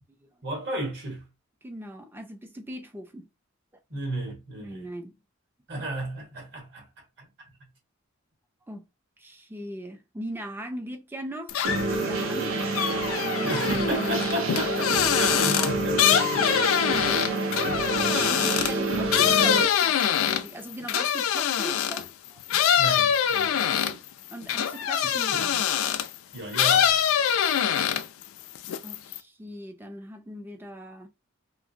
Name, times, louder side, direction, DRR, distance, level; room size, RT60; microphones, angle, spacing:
voice 1, 0.4-1.2 3.9-4.8 5.7-6.9 13.4-16.4 22.8-23.7 25.3-25.5 26.3-27.0, right 1 dB, 55° right, 1.3 m, -33 dB
voice 2, 1.6-3.3 4.6-5.2 8.7-8.8 9.2-12.6 13.2-14.0 18.1-22.4 23.9-24.0 24.3-25.7 28.8-31.1, right 1 dB, 10° right, 0.3 m, -40 dB
sound 1, 11.5-12.0 12.4-22.1 22.5-26.1 26.5-28.2 28.5-29.2, left 9 dB, 75° left, 0.3 m, -24 dB
sound 2, 11.6-19.6, right 2 dB, 75° right, 0.6 m, -28 dB
2.7 x 2.6 x 2.6 m
head